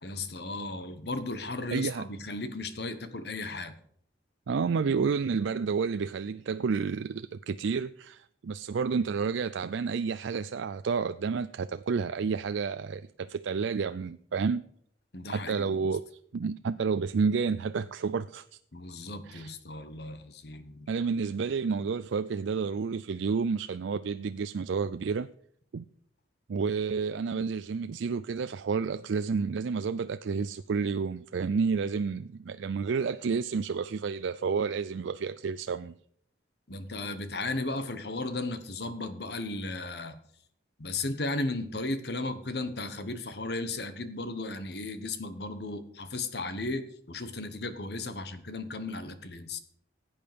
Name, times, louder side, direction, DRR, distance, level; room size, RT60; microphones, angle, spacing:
voice 1, 0.0-3.8 15.1-15.7 18.7-20.9 36.7-40.2 40.8-49.6, left 2 dB, 60° left, 1.3 m, -35 dB
voice 2, 1.7-2.0 4.5-14.6 15.3-16.0 16.3-18.6 19.3-19.5 20.9-25.3 25.7-25.9 26.5-35.9, right 5 dB, 80° right, 0.4 m, -30 dB
16.0 x 8.8 x 5.2 m
head